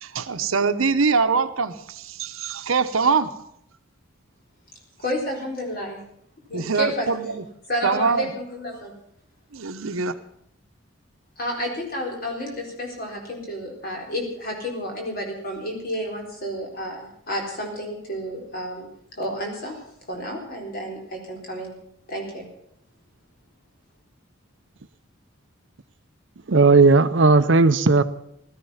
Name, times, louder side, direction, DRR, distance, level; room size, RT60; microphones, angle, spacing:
voice 1, 0.0-3.3 6.5-7.4 7.8-8.3 9.5-10.2, right 5 dB, 85° right, 10 dB, 1.0 m, -23 dB
voice 2, 5.0-6.0 6.5-7.1 7.7-8.9 11.4-18.9 19.2-19.8 20.1-21.7 22.1-22.4, equal, 45° left, 0 dB, 4.2 m, -31 dB
voice 3, 26.5-28.0, right 3 dB, 60° right, 13 dB, 0.6 m, -15 dB
16.5 x 13.5 x 5.7 m, 0.75 s
head